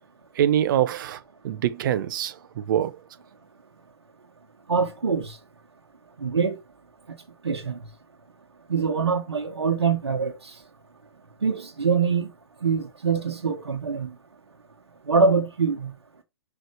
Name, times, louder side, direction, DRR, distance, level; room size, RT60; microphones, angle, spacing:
voice 1, 0.4-1.2 1.4-2.9, right 10 dB, 50° right, 0.9 m, -24 dB
voice 2, 4.7-5.4 6.2-6.6 7.4-7.8 8.7-10.3 11.4-12.3 12.6-14.1 15.1-15.9, right 5 dB, 85° right, 1.4 m, -24 dB
6.5 x 4.8 x 3.1 m
hypercardioid pair, 125°, 13 cm